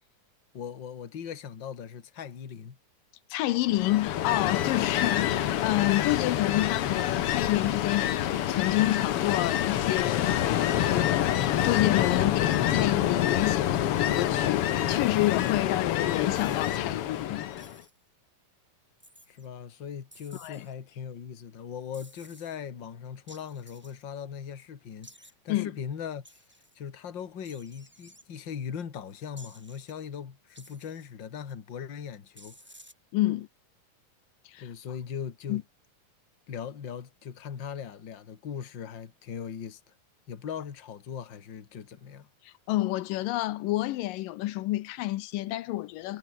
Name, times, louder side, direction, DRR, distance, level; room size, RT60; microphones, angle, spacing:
voice 1, 0.5-2.8 19.3-26.3 26.8-32.6 34.6-35.6 36.5-39.8 40.3-42.3, left 7 dB, 40° left, 2.4 m, -39 dB
voice 2, 3.3-17.5 20.3-20.7 25.5-25.7 33.1-33.5 34.5-34.7 35.5-35.6 42.4-46.2, left 16 dB, 85° left, 2.5 m, -29 dB
Ocean, 3.7-17.8, left 11 dB, 60° left, 1.6 m, -27 dB
sound 1, 14.9-15.6 16.3-16.8 17.6-18.0 19.0-19.5 20.1-20.7 21.9-22.6 23.3-24.0 25.0-25.3 26.2-26.8 27.4-28.2 29.4-29.9 30.5-31.1 32.4-32.9, equal, 5° right, 5.1 m, -54 dB
omnidirectional pair, 3.8 m